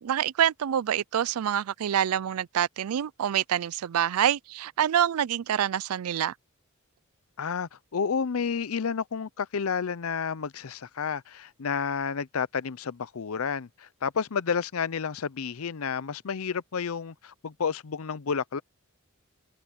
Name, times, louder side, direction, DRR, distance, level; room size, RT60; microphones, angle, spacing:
voice 1, 0.0-6.3, right 10 dB, 90° right, 0.4 m, -26 dB
voice 2, 7.4-18.6, left 6 dB, 80° left, 0.6 m, -30 dB
head